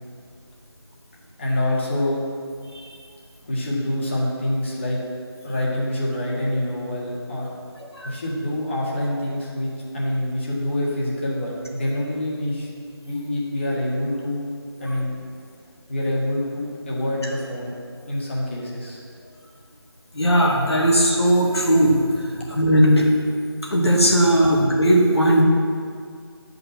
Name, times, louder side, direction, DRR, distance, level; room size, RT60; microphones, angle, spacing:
voice 1, 1.4-2.2 3.4-5.0 5.4-7.5 8.0-12.7 13.0-14.5 14.8-15.2 15.9-17.7 18.1-19.0, left 1 dB, 30° left, -5 dB, 1.8 m, -26 dB
voice 2, 20.1-23.1 23.7-25.4, equal, 75° left, -2 dB, 2.3 m, -18 dB
9.8 x 5.5 x 5.8 m, 2.2 s
figure-of-eight pair, 165°, 14 cm